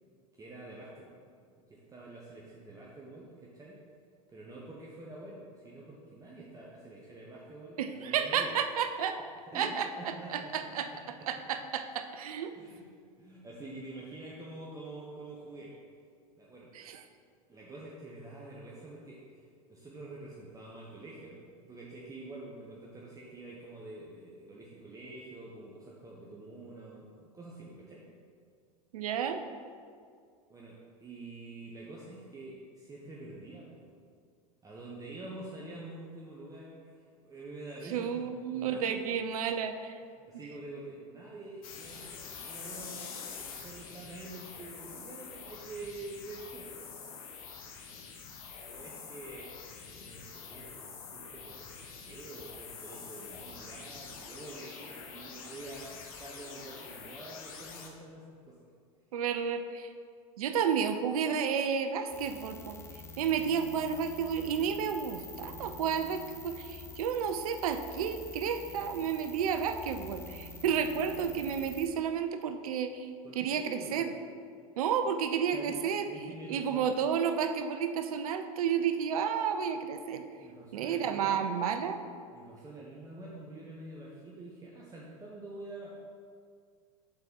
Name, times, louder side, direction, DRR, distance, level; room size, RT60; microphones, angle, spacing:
voice 1, 0.4-1.2 1.7-3.8 4.3-8.5 9.5-10.6 10.9-11.0 11.5-11.6 12.5-12.8 13.2-15.7 16.3-16.7 17.5-28.1 30.5-33.8 34.6-39.0 39.3-39.4 40.2-46.9 47.9-48.0 48.5-49.5 50.0-58.6 73.2-74.1 75.0-75.1 75.5-75.8 76.0-77.0 80.4-81.6 82.3-85.9, right 2 dB, 20° right, -4 dB, 1.0 m, -47 dB
voice 2, 7.8-9.2 9.5-10.9 11.3-12.5 16.7-17.0 28.9-29.4 37.9-40.0 59.1-59.9 60.4-62.8 63.2-73.1 73.4-74.1 74.8-76.1 76.5-80.2 80.7-82.0, right 7 dB, 75° right, 8 dB, 0.6 m, -31 dB
sound 1, 41.6-57.9, left 5 dB, 70° left, 1.1 m, -46 dB
sound 2, 62.1-71.9, left 2 dB, 15° left, 0.8 m, -47 dB
6.8 x 4.3 x 5.3 m, 2.2 s
hypercardioid pair, 90°, 19 cm